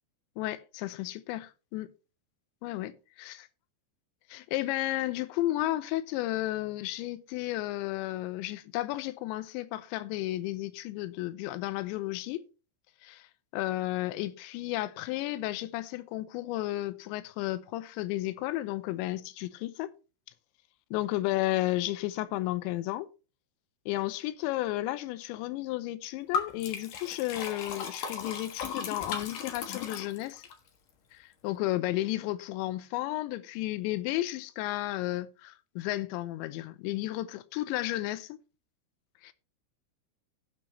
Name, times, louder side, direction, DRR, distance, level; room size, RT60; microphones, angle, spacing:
voice 1, 0.4-1.9 2.6-3.3 4.3-12.4 13.0-13.3 13.5-19.9 20.9-23.1 23.9-30.4 31.1-38.4 39.2-39.3, left 16 dB, 80° left, 2.9 m, -33 dB
Liquid, 26.3-30.5, left 6 dB, 65° left, 2.2 m, -36 dB
18.0 x 6.1 x 3.1 m
omnidirectional pair, 5.5 m